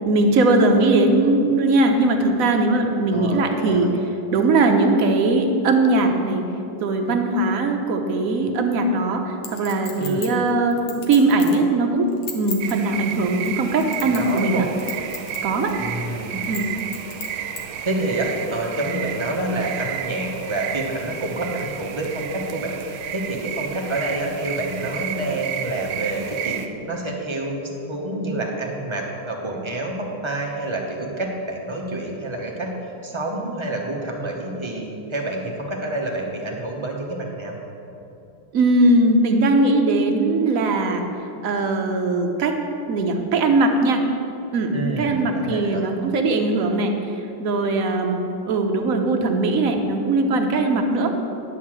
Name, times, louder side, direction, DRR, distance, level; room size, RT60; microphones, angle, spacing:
voice 1, 0.0-3.9 4.3-6.4 6.8-12.1 12.3-14.6 15.4-15.7 16.5-16.7 38.5-41.0 41.4-42.5 42.9-44.0 44.5-46.9 47.4-48.2 48.5-51.1, right 2 dB, 55° right, 3 dB, 1.0 m, -20 dB
voice 2, 3.1-3.9 10.0-10.3 14.0-14.7 15.8-16.4 17.8-32.7 33.0-37.6 44.7-45.8, right 2 dB, 25° right, -1 dB, 0.7 m, -28 dB
Chink clink, 9.4-11.6 12.1-12.7 13.4-14.5 14.8-15.4 15.7-15.8 16.4-17.6 18.2-18.3, left 6 dB, 70° left, 2.0 m, -34 dB
sound 1, 12.6-26.7, right 9 dB, 80° right, 1.4 m, -32 dB
10.5 x 5.5 x 7.5 m, 2.8 s
omnidirectional pair, 2.3 m